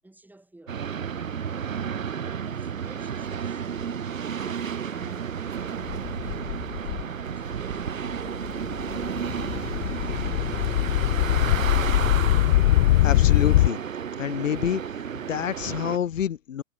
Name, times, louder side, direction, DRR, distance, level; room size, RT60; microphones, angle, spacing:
voice 1, 0.0-0.8 2.3-7.9, right 2 dB, 5° right, 8.0 m, -51 dB
sound 1, 0.7-16.0, right 7 dB, 80° right, 3.1 m, -32 dB
sound 2, 5.8-7.0 7.7-7.8 8.1-13.7, left 16 dB, 50° left, 0.6 m, -22 dB
voice 2, 13.0-13.8 14.2-14.8 15.1-16.6, left 9 dB, 70° left, 3.1 m, -27 dB
hypercardioid pair, 115°, 39 cm